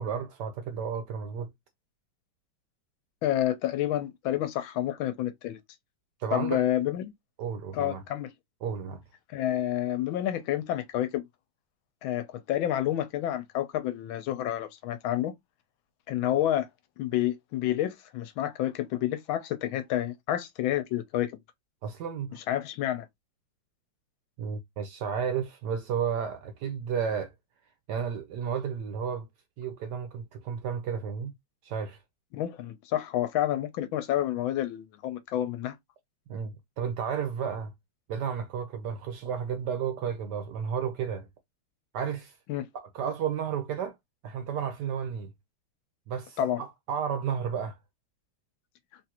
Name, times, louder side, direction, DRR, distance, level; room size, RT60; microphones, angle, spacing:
voice 1, 0.0-1.5 6.2-6.6 7.4-8.0 8.6-9.0 21.8-22.4 24.4-27.3 27.9-29.3 29.6-31.3 31.6-32.0 36.3-37.7 38.1-41.3 41.9-42.3 42.7-44.0 44.2-45.3 46.1-47.8, right 7 dB, 70° right, 1.1 m, -32 dB
voice 2, 3.2-5.6 6.3-7.1 7.7-8.3 9.3-11.2 12.0-15.3 16.1-16.7 17.0-21.4 22.3-23.1 32.3-35.8 42.5-42.7 46.4-46.6, left 12 dB, 80° left, 1.4 m, -29 dB
3.7 x 2.5 x 2.8 m
omnidirectional pair, 2.3 m